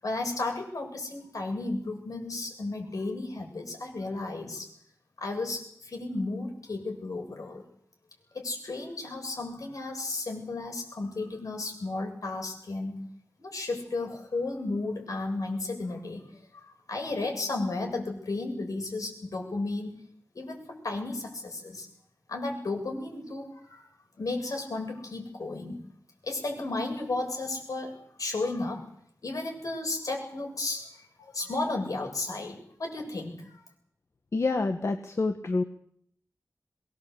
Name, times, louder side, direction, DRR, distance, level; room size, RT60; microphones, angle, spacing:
voice 1, 0.0-4.7 5.2-7.6 8.3-13.1 13.4-16.3 16.5-20.0 20.3-21.9 22.3-23.9 24.2-25.8 26.2-28.9 29.2-33.6, left 2 dB, 80° left, 3 dB, 7.6 m, -34 dB
voice 2, 34.3-35.6, left 3 dB, 55° left, 6 dB, 1.7 m, -27 dB
23.5 x 19.5 x 8.3 m, 0.66 s
wide cardioid pair, 90°, 6 cm